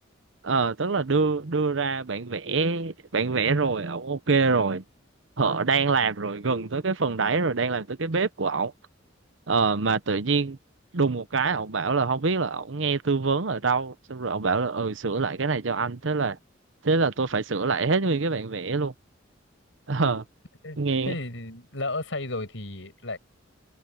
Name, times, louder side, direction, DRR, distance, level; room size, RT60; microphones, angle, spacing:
voice 1, 0.4-4.8 5.4-8.7 9.5-10.6 10.9-16.4 16.8-18.9 19.9-20.2 20.8-21.1, right 4 dB, 70° right, 0.9 m, -25 dB
voice 2, 21.1-23.2, left 2 dB, 70° left, 8.0 m, -33 dB
head